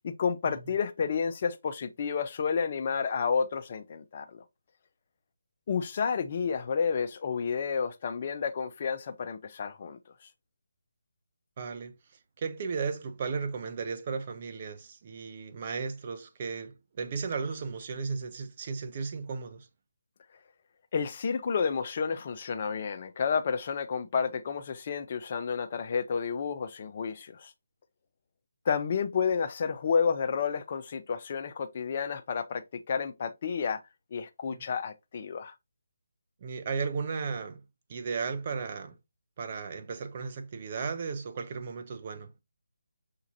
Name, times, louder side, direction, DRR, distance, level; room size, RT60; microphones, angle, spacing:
voice 1, 0.0-4.4 5.7-10.0 20.9-27.5 28.7-33.8 34.1-35.5, left 6 dB, 40° left, 0.5 m, -30 dB
voice 2, 11.6-11.9 12.4-19.7 34.5-34.6 36.4-37.6 37.9-38.9 39.4-42.3, right 5 dB, 35° right, 0.6 m, -35 dB
5.9 x 2.8 x 2.6 m
figure-of-eight pair, 160°, 0 cm